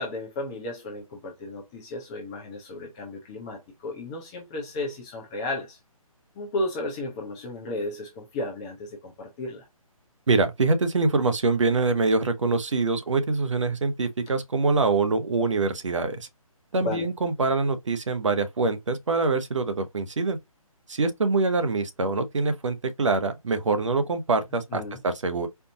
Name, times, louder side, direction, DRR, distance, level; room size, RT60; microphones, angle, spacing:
voice 1, 0.0-5.8 6.4-9.7 16.8-17.1 24.7-25.0, left 2 dB, 10° left, 0.4 m, -34 dB
voice 2, 10.3-16.3 16.7-20.4 20.9-25.5, right 3 dB, 55° right, 0.9 m, -24 dB
4.5 x 2.6 x 3.8 m
figure-of-eight pair, 140°, 19 cm